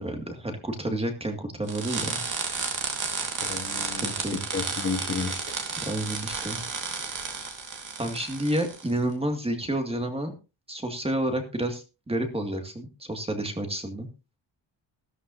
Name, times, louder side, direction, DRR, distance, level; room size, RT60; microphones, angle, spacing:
voice 1, 0.0-2.2 3.8-4.4 5.8-6.6 8.0-10.3 10.7-14.1, right 1 dB, 10° right, 5 dB, 2.0 m, -30 dB
sound 1, 1.7-8.9, right 4 dB, 40° right, 2.6 m, -32 dB
voice 2, 3.4-5.5, left 4 dB, 25° left, 5 dB, 1.1 m, -32 dB
15.0 x 13.5 x 2.7 m, 0.29 s
wide cardioid pair, 165°, 48 cm